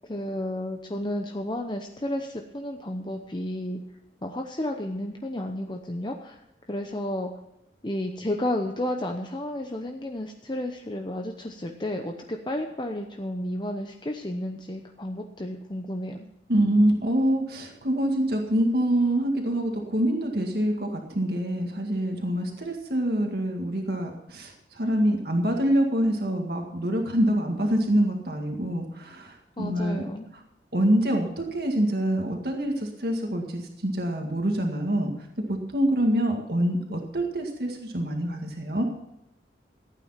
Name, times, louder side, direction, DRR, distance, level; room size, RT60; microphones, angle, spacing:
voice 1, 0.0-3.8 4.2-6.4 6.7-7.3 7.8-16.3 29.6-30.3, left 1 dB, 25° left, 3 dB, 0.8 m, -32 dB
voice 2, 16.5-30.0 30.7-35.1 35.5-38.8, right 1 dB, 60° right, 2 dB, 1.9 m, -25 dB
15.0 x 9.1 x 5.8 m, 0.84 s
head